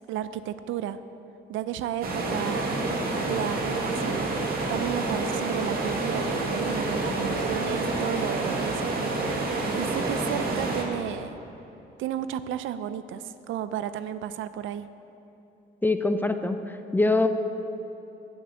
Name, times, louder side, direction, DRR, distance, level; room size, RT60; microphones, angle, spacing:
voice 1, 0.1-1.0 1.5-2.7 3.2-4.3 4.7-11.4 12.0-14.9, right 10 dB, 80° right, 13 dB, 0.4 m, -33 dB
sound 1, 2.0-10.8, right 2 dB, 50° right, 1.8 m, -28 dB
voice 2, 15.8-16.6 16.9-17.3, left 2 dB, 10° left, 8 dB, 0.5 m, -23 dB
8.2 x 6.1 x 7.9 m, 2.9 s
cardioid pair, 90°, 20 cm